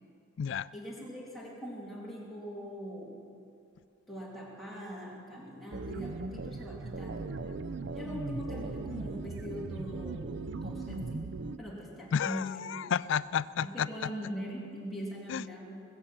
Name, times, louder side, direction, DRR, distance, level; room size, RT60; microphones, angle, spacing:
voice 1, 0.7-3.3 4.1-7.3 7.9-10.4 10.6-11.3 11.6-12.8 13.6-15.8, equal, ahead, -6 dB, 2.7 m, -41 dB
sound 1, 5.7-11.6, right 3 dB, 60° right, 0.5 m, -38 dB
voice 2, 12.1-14.1 15.3-15.4, left 8 dB, 65° left, 18 dB, 0.3 m, -31 dB
21.0 x 7.8 x 7.3 m, 2.5 s
head